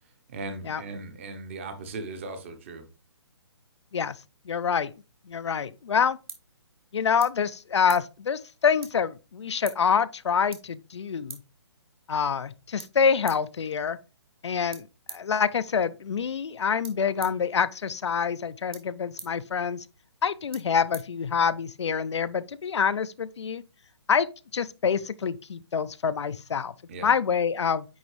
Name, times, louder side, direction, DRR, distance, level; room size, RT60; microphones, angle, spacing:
voice 1, 0.3-2.9 26.9-27.1, right 3 dB, 25° right, 0.8 m, -38 dB
voice 2, 4.5-4.9 5.3-6.2 6.9-11.4 12.1-14.0 14.4-19.8 20.2-23.6 24.1-24.3 24.5-26.7 27.0-27.9, left 6 dB, 75° left, 0.5 m, -26 dB
sound 1, 5.5-21.8, right 6 dB, 55° right, 1.4 m, -50 dB
9.3 x 3.5 x 3.1 m
hypercardioid pair, 165°, 15 cm